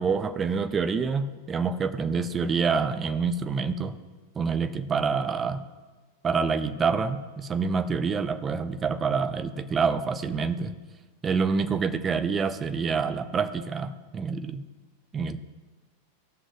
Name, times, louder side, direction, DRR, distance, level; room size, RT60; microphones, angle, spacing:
voice 1, 0.0-3.9 4.4-5.6 6.2-10.7 11.2-14.6 15.1-15.4, right 5 dB, 20° right, 11 dB, 0.6 m, -27 dB
16.5 x 6.2 x 3.4 m, 1.3 s
figure-of-eight pair, 90°, 0 cm